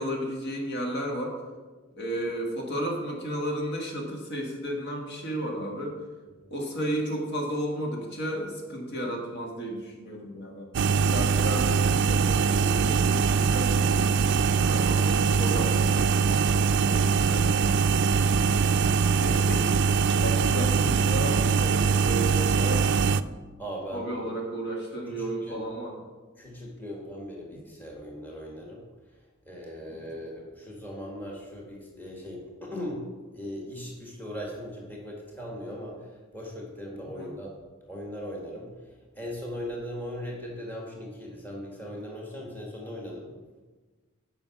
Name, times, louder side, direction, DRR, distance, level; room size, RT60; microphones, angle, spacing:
voice 1, 0.0-1.4 2.0-6.0 6.5-10.7 11.1-17.6 19.2-19.8 20.1-23.1 23.9-26.0 30.0-30.1 37.1-37.4, right 1 dB, 55° left, 0 dB, 1.7 m, -33 dB
sound 1, 10.7-23.2, right 5 dB, 60° right, 0.3 m, -23 dB
voice 2, 23.6-24.1 25.1-25.7 26.4-28.8 29.4-33.0 33.3-37.5 37.9-38.7 39.1-43.3, equal, 10° left, -2 dB, 1.7 m, -39 dB
9.1 x 5.6 x 5.9 m, 1.3 s
head